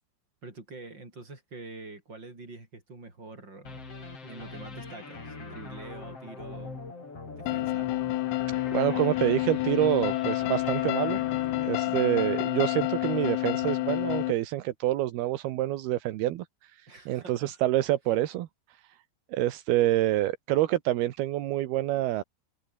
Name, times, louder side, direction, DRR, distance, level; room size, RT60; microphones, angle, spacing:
voice 1, 0.4-3.8 4.2-6.8 7.4-8.0 11.7-12.1 16.9-17.6, right 3 dB, 20° right, 6.8 m, -46 dB
sound 1, 3.7-12.7, left 3 dB, 30° left, 6.3 m, -43 dB
sound 2, 7.5-14.3, left 17 dB, 85° left, 3.8 m, -29 dB
voice 2, 8.7-11.2 11.6-16.4 17.1-18.5 19.3-22.2, right 15 dB, 75° right, 2.4 m, -27 dB
omnidirectional pair, 6.0 m